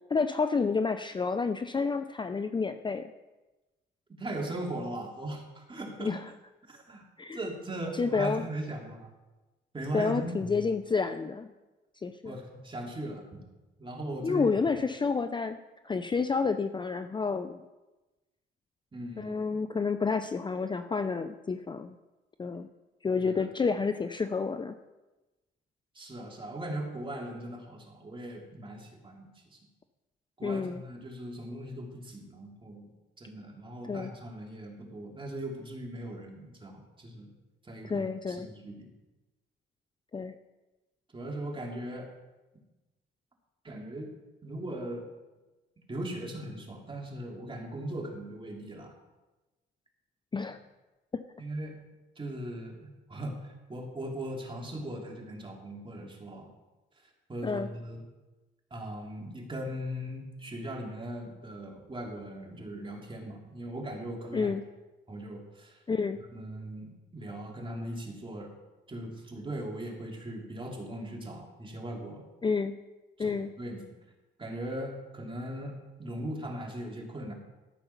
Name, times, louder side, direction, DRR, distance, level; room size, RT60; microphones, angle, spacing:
voice 1, 0.1-3.1 6.0-6.3 7.2-7.4 8.0-8.5 9.9-11.5 12.0-12.4 14.2-15.6 15.8-17.6 19.2-21.9 22.4-22.7 23.0-24.8 30.4-30.8 33.9-34.1 37.8-38.5 40.1-40.3 50.3-50.6 51.1-51.2 57.4-57.7 64.3-64.6 65.9-66.2 72.4-72.8 73.2-73.5, left 4 dB, 25° left, 10 dB, 0.5 m, -29 dB
voice 2, 4.2-6.1 6.7-7.0 7.3-9.1 9.7-10.5 12.2-13.4 13.8-14.5 18.9-19.4 23.2-23.7 25.9-29.6 30.4-32.9 33.2-37.3 37.6-38.9 41.1-42.1 43.6-44.1 44.4-45.1 45.9-48.9 51.4-51.8 52.2-56.5 57.3-58.0 58.7-64.5 65.1-65.8 66.3-68.5 68.9-72.3 73.2-73.8 74.4-77.3, right 1 dB, 25° right, 0 dB, 2.9 m, -39 dB
13.5 x 6.7 x 5.9 m, 1.1 s
cardioid pair, 90°, 20 cm